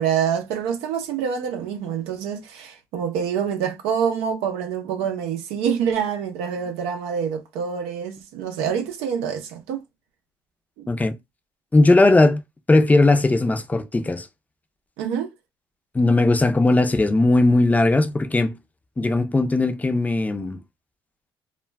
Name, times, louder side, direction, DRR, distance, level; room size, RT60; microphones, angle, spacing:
voice 1, 0.0-9.8 10.8-10.9 15.0-15.3, right 7 dB, 85° right, 0.5 m, -26 dB
voice 2, 11.7-12.4 12.7-14.3 15.9-18.6 19.0-20.6, left 2 dB, 15° left, 0.5 m, -18 dB
2.2 x 2.1 x 3.3 m
supercardioid pair, 70°, 10 cm